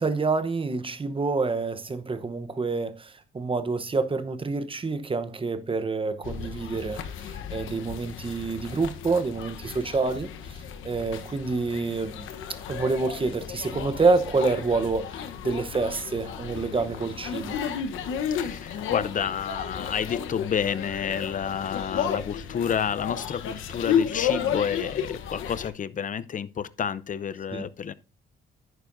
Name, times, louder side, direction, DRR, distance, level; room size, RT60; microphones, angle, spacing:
voice 1, 0.0-7.0 7.5-10.3 10.8-12.2 12.7-17.6 27.5-27.6, right 3 dB, 25° right, 0.9 m, -27 dB
sound 1, 6.2-25.7, left 8 dB, 85° left, 1.1 m, -33 dB
voice 2, 18.3-27.9, left 7 dB, 40° left, 0.6 m, -30 dB
10.5 x 9.2 x 2.6 m
cardioid pair, 90°, 20 cm